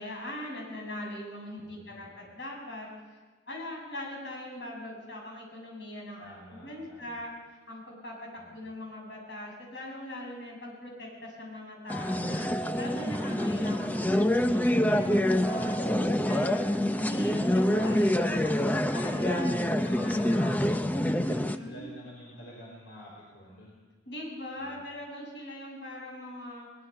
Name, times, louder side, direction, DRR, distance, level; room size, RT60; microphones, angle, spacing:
voice 1, 0.0-2.9 3.5-7.3 7.7-12.5 12.8-16.6 17.0-20.5 21.2-21.9 24.1-26.7, left 1 dB, 65° left, -2 dB, 7.7 m, -41 dB
voice 2, 1.6-2.2 6.2-7.2 8.4-8.6 18.6-19.3 19.8-21.0 21.6-23.8 24.6-24.8, equal, 85° left, -4 dB, 5.1 m, -49 dB
sound 1, 11.9-21.6, left 1 dB, 10° left, 0.6 m, -26 dB
22.5 x 20.5 x 5.7 m, 1.3 s
head